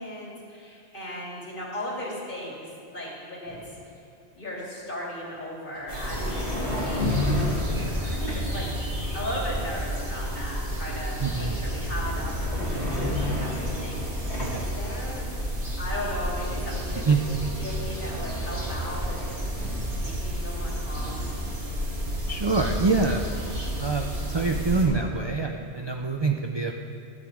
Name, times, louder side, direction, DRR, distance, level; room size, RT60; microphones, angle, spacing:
voice 1, 0.0-3.6 4.4-8.7 9.1-15.3 15.8-19.4 20.0-21.3, left 1 dB, 50° left, -4 dB, 2.4 m, -37 dB
sound 1, 3.5-3.7 5.8-8.7 11.3-11.5 11.9-14.7 17.2-17.3 17.5-19.8, left 1 dB, 85° left, 2.5 m, -32 dB
sound 2, 5.9-24.8, equal, 65° right, 2.0 m, -31 dB
voice 2, 11.2-11.6 14.4-14.6 17.1-17.2 22.3-23.2 23.8-26.7, right 4 dB, 40° right, 3 dB, 0.4 m, -25 dB
12.5 x 8.1 x 4.9 m, 2.7 s
omnidirectional pair, 1.1 m